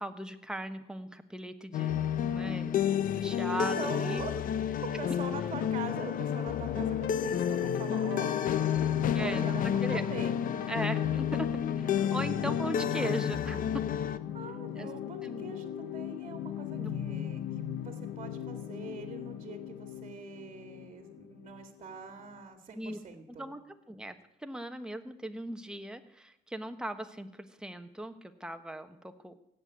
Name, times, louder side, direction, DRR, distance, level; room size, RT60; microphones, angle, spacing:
voice 1, 0.0-2.7 3.2-4.2 9.1-10.1 10.7-13.6 14.8-14.9 15.2-15.5 16.8-16.9 22.7-23.0 23.3-29.4, right 1 dB, 5° right, 7 dB, 1.3 m, -39 dB
sound 1, 1.7-14.2, left 9 dB, 55° left, 0.9 m, -30 dB
voice 2, 3.8-4.3 5.0-8.4 9.1-10.3 14.3-23.5, right 5 dB, 35° right, 7 dB, 2.1 m, -43 dB
sound 2, 5.5-22.4, left 10 dB, 80° left, 1.1 m, -39 dB
17.0 x 7.9 x 9.6 m, 0.88 s
cardioid pair, 110°, 17 cm